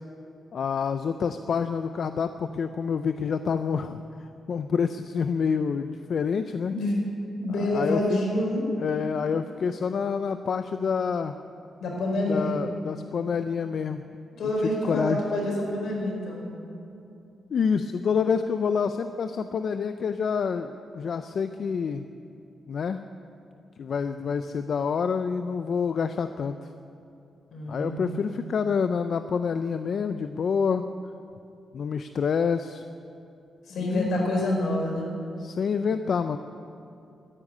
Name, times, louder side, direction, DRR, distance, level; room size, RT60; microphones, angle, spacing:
voice 1, 0.5-4.0 4.5-6.7 7.7-8.0 8.8-11.3 12.3-14.0 14.8-15.2 17.5-22.1 22.7-23.0 23.8-26.6 27.7-30.9 31.7-32.8 33.8-34.3 35.4-36.4, left 6 dB, 60° left, 9 dB, 0.5 m, -27 dB
voice 2, 6.7-7.0 7.4-8.6 11.8-12.6 14.4-16.4 27.5-28.2 33.7-35.1, left 1 dB, 80° left, -1 dB, 4.8 m, -27 dB
14.5 x 9.9 x 9.5 m, 2.7 s
cardioid pair, 120°, 0 cm